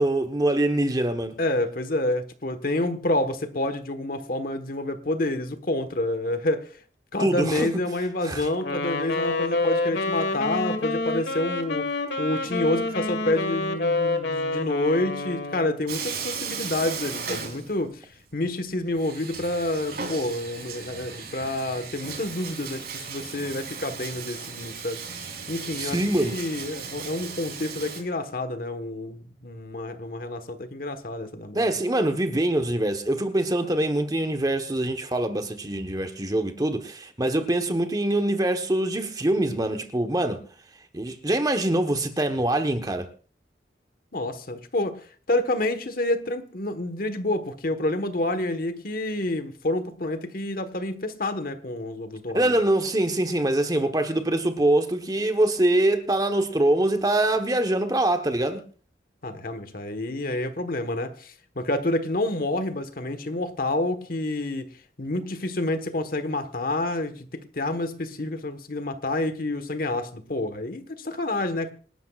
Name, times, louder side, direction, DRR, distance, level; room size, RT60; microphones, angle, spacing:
voice 1, 0.0-1.4 7.2-7.8 8.2-8.5 25.8-26.4 31.5-40.4 40.9-43.1 52.3-58.6, right 1 dB, 20° right, 1.1 m, -24 dB
voice 2, 1.4-6.8 7.1-11.9 12.2-25.0 25.5-31.7 44.1-45.0 45.3-52.5 59.2-64.7 65.0-71.7, left 1 dB, 55° left, 1.3 m, -28 dB
Wind instrument woodwind instrument, 8.6-15.8, left 2 dB, 70° left, 1.7 m, -28 dB
Bathtub (filling or washing), 15.9-18.2 18.4-18.5 19.0-28.0, right 6 dB, 60° right, 3.5 m, -36 dB
27.0 x 12.0 x 2.4 m
head